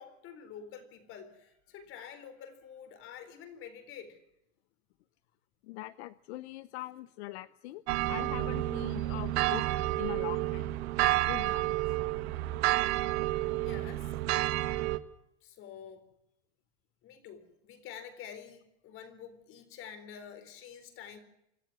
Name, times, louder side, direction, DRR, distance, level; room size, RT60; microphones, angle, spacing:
voice 1, 0.0-4.2 13.6-14.2 15.4-16.0 17.0-21.2, left 8 dB, 40° left, 10 dB, 4.1 m, -48 dB
voice 2, 5.6-10.7 11.3-11.8, left 17 dB, 70° left, 15 dB, 0.9 m, -42 dB
sound 1, 7.9-15.0, right 17 dB, 65° right, 1.5 m, -30 dB
26.5 x 14.0 x 9.7 m, 0.83 s
supercardioid pair, 155°, 34 cm